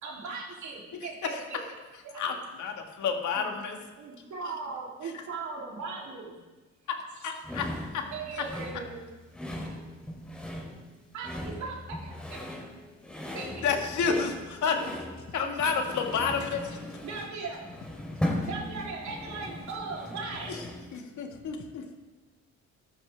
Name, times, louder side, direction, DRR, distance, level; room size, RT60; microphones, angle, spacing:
voice 1, 0.0-1.6 2.0-2.3 3.3-3.5 4.0-6.3 8.1-9.1 11.1-12.5 13.3-13.7 15.4-15.6 17.0-17.7 18.4-20.5, right 4 dB, 70° right, 3.2 m, -38 dB
voice 2, 2.2-3.8 4.4-4.5 7.2-7.7 7.9-8.0 8.4-8.5 13.6-15.0 15.3-16.8 20.9-21.8, left 5 dB, 75° left, 1.9 m, -30 dB
sound 1, 7.4-20.9, left 1 dB, 5° left, 2.8 m, -38 dB
voice 3, 18.0-18.5 20.9-21.5, left 5 dB, 45° left, 1.1 m, -51 dB
13.0 x 13.0 x 3.5 m
cardioid pair, 90°, 30 cm